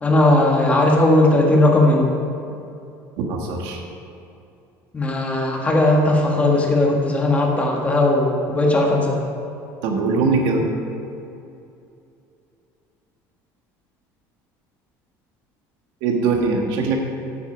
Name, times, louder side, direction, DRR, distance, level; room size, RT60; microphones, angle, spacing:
voice 1, 0.0-2.1 4.9-9.2, left 1 dB, 15° left, 0 dB, 1.4 m, -17 dB
voice 2, 3.3-3.8 9.8-10.6 16.0-17.0, right 4 dB, 75° right, 1 dB, 1.6 m, -21 dB
9.5 x 8.7 x 5.1 m, 2.6 s
cardioid pair, 150°, 8 cm